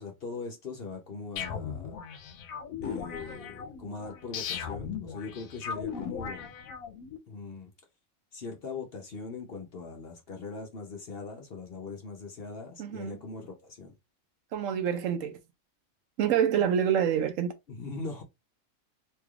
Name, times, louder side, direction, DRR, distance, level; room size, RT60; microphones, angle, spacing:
voice 1, 0.0-2.0 2.8-6.5 7.3-7.7 8.3-13.9 17.7-18.2, left 4 dB, 55° left, 0.8 m, -40 dB
sound 1, 1.4-7.2, left 7 dB, 80° left, 1.0 m, -38 dB
voice 2, 12.8-13.2 14.5-15.4 16.2-17.5, right 8 dB, 70° right, 0.9 m, -27 dB
3.2 x 3.0 x 2.3 m
omnidirectional pair, 1.5 m